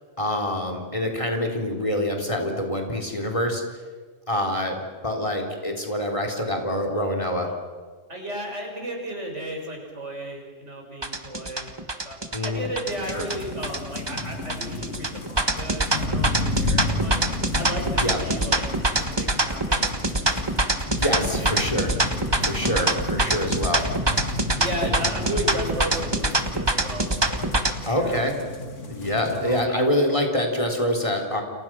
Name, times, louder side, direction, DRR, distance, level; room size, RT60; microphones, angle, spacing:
voice 1, 0.2-3.6 4.3-4.8 5.0-7.5 12.3-12.7 13.0-13.2 17.9-18.2 20.3-21.9 22.4-23.8 27.9-28.3 28.9-31.4, left 1 dB, 25° left, 3 dB, 3.8 m, -26 dB
voice 2, 8.1-11.7 12.0-18.7 19.0-20.4 20.9-21.5 22.6-23.1 24.6-28.2 29.0-29.8, equal, 75° right, 1 dB, 6.9 m, -35 dB
sound 1, 11.0-27.7, right 2 dB, 20° right, 1.4 m, -24 dB
sound 2, 12.8-29.7, left 2 dB, 85° left, 2.6 m, -32 dB
30.0 x 29.0 x 6.2 m, 1.5 s
omnidirectional pair, 1.2 m